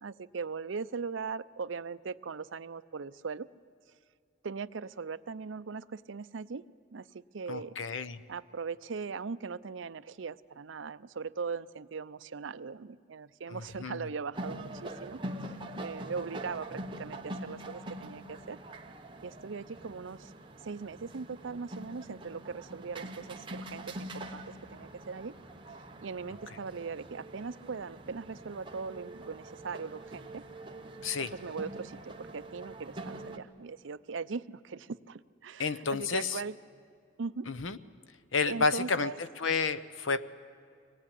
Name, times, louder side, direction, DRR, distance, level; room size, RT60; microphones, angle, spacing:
voice 1, 0.0-3.5 4.4-6.6 6.9-7.8 8.3-18.6 19.2-20.3 20.6-25.4 26.0-30.4 31.3-36.5 37.2-37.5 38.5-39.2, right 5 dB, 75° right, 15 dB, 0.6 m, -40 dB
voice 2, 7.5-8.2 13.5-14.1 31.0-31.3 35.6-36.4 37.5-37.8 38.3-39.1 39.4-40.3, left 4 dB, 80° left, 13 dB, 0.9 m, -31 dB
sound 1, 14.3-33.4, right 1 dB, 25° right, 1.1 m, -44 dB
24.5 x 18.5 x 10.0 m, 2.3 s
head